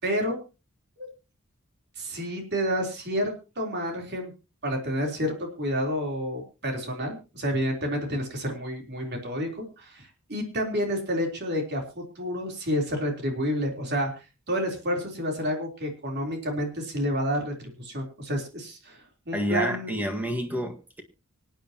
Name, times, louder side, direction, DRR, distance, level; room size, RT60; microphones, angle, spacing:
voice 1, 0.0-0.4 1.0-1.1 2.0-4.3 4.6-9.5 9.8-14.1 14.5-19.0 19.3-20.0, equal, 55° right, 3.7 m, -29 dB
voice 2, 19.3-21.0, equal, 10° right, 1.8 m, -29 dB
25.0 x 9.3 x 3.0 m
head